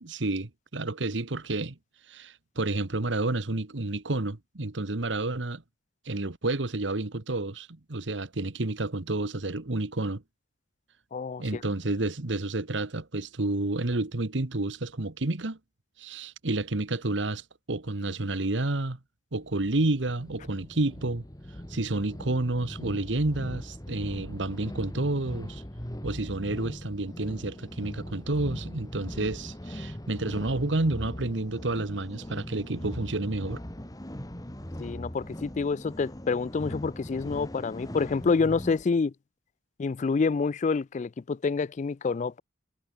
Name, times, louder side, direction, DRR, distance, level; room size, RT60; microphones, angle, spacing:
voice 1, 0.0-1.8 2.1-5.6 6.0-10.2 11.4-15.6 16.0-19.0 19.3-21.2 21.7-25.6 26.0-33.6, right 2 dB, 75° right, 1.4 m, -30 dB
voice 2, 11.1-11.6 34.8-39.1 39.8-42.4, left 4 dB, 40° left, 0.4 m, -28 dB
sound 1, 19.4-38.8, equal, 20° left, 2.0 m, -40 dB
head